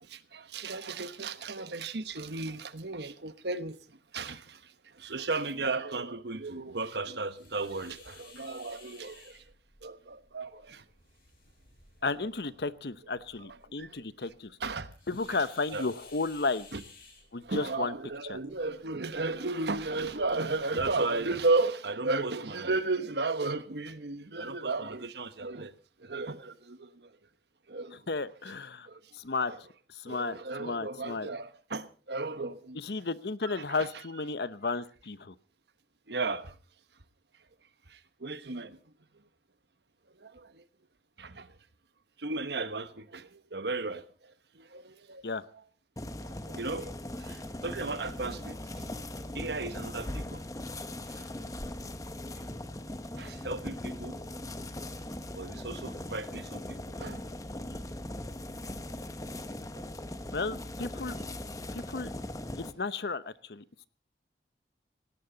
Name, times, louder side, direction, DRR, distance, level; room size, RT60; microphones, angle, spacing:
voice 1, 0.0-3.8 4.1-9.4 9.8-10.8 13.8-14.0 14.6-14.9 15.3-15.4 15.7-15.9 16.7-16.8 17.4-25.7 26.0-26.9 27.7-28.0 28.9-29.0 29.5-29.6 30.1-32.8 33.4-33.9 36.1-36.5 37.9-38.8 40.2-40.6 41.2-41.5 42.2-44.0 44.5-45.2 46.2-46.9 47.2-48.6 49.3-50.4 51.1-51.2 53.2-54.2 55.3-57.2, right 3 dB, 75° right, 1.2 m, -34 dB
sound 1, 7.4-21.5, left 4 dB, 55° left, 7.3 m, -57 dB
voice 2, 12.0-14.5 15.1-16.7 17.3-17.9 18.3-18.4 27.9-28.9 29.1-31.3 32.7-35.4 45.2-45.5 60.3-61.2 61.7-62.1 62.6-63.6, left 3 dB, 70° left, 0.9 m, -33 dB
sound 2, 46.0-62.7, left 1 dB, 20° left, 1.0 m, -40 dB
18.5 x 17.0 x 4.0 m
head